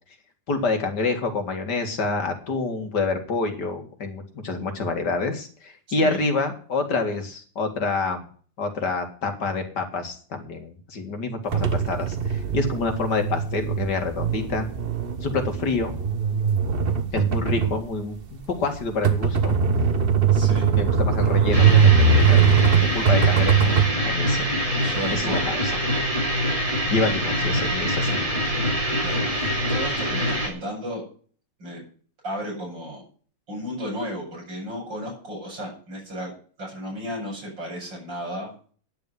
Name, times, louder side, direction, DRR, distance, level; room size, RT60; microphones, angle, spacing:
voice 1, 0.5-8.3 8.6-14.7 15.2-15.9 17.1-19.6 20.7-22.5 22.9-23.8 24.0-24.6 25.1-25.8 26.7-28.3, left 3 dB, 65° left, 6 dB, 2.7 m, -27 dB
sound 1, 11.5-23.9, right 6 dB, 35° right, 1.1 m, -21 dB
voice 2, 20.3-20.7 24.8-25.5 29.0-31.0 31.6-31.8 32.2-33.0 33.5-36.3 36.6-38.5, equal, 75° right, -2 dB, 6.9 m, -34 dB
sound 2, 21.5-30.5, equal, 20° right, 3.8 m, -24 dB
10.5 x 7.0 x 9.4 m, 0.44 s
omnidirectional pair, 2.0 m